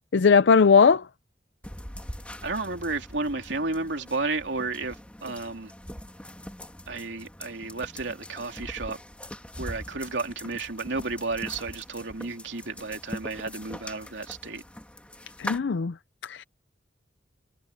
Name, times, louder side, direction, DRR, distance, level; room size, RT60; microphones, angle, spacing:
voice 1, 0.1-1.1 15.4-15.9 16.2-16.4, left 5 dB, 75° left, 0.5 m, -19 dB
sound 1, 1.6-15.6, left 1 dB, 5° left, 2.5 m, -42 dB
voice 2, 2.4-5.0 5.2-5.7 6.9-9.0 9.6-14.6, right 3 dB, 85° right, 2.8 m, -32 dB
head